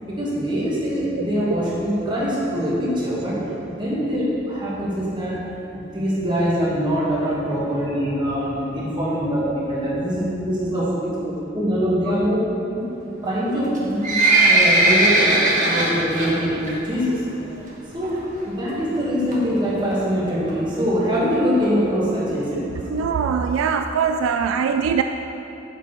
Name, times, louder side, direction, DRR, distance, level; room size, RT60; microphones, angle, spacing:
voice 1, 0.1-3.4 3.8-5.4 5.7-12.4 13.2-14.1 14.5-17.2 17.9-18.2 18.5-22.6, equal, 25° right, -8 dB, 2.0 m, -23 dB
Livestock farm animals working animals, 13.6-16.3 16.7-16.9 17.3-17.4 18.0-18.1 18.4-18.5 18.7-18.8 19.3-19.6 20.2-20.3 20.5-20.6 20.7-20.8 21.1-21.2 21.6-21.7 22.2-22.3 22.8-22.9, right 2 dB, 40° right, 1.4 m, -17 dB
voice 2, 22.9-25.0, right 6 dB, 85° right, 7 dB, 0.3 m, -21 dB
7.3 x 7.0 x 4.5 m, 3.0 s
head